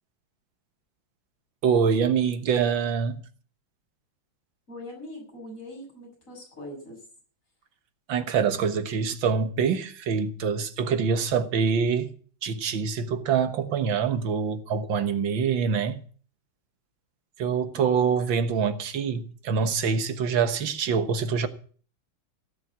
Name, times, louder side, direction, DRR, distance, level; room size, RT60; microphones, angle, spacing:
voice 1, 1.6-3.2 8.1-12.1 12.4-16.0 17.4-21.5, right 6 dB, 80° right, 2.0 m, -25 dB
voice 2, 4.7-7.0 17.7-18.3, left 1 dB, 40° left, 7.1 m, -42 dB
16.5 x 7.7 x 8.5 m
omnidirectional pair, 2.1 m